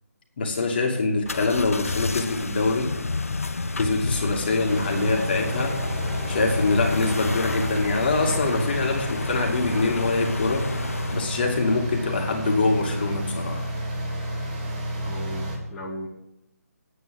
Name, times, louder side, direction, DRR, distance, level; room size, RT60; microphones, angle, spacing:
voice 1, 0.4-3.0 3.7-5.8 6.3-10.7 11.1-13.7, left 3 dB, 35° left, 1 dB, 2.5 m, -24 dB
sound 1, 1.3-11.4, left 3 dB, 60° left, 0.9 m, -31 dB
sound 2, 4.7-15.6, right 1 dB, 30° right, 3.8 m, -30 dB
voice 2, 15.0-16.1, equal, 10° left, -7 dB, 1.9 m, -36 dB
9.5 x 9.4 x 7.8 m, 0.84 s
figure-of-eight pair, 150°, 9 cm